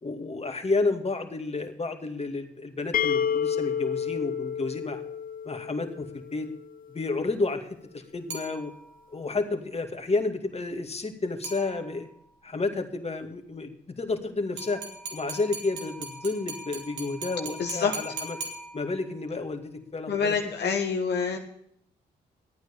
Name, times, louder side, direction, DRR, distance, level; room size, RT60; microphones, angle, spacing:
voice 1, 0.0-5.0 5.5-6.5 6.9-7.7 7.9-8.7 9.1-12.1 12.4-14.8 15.1-18.4 18.7-20.3 20.6-20.7, left 3 dB, 35° left, 5 dB, 2.4 m, -31 dB
sound 1, 2.9-6.7, left 7 dB, 50° left, 0.7 m, -30 dB
sound 2, 8.3-9.1 11.4-12.2 14.6-19.2, right 3 dB, 80° right, 3.0 m, -40 dB
voice 2, 17.6-17.9 20.1-21.4, left 6 dB, 70° left, 3 dB, 1.5 m, -26 dB
13.0 x 9.2 x 6.9 m, 0.69 s
supercardioid pair, 50°, 18 cm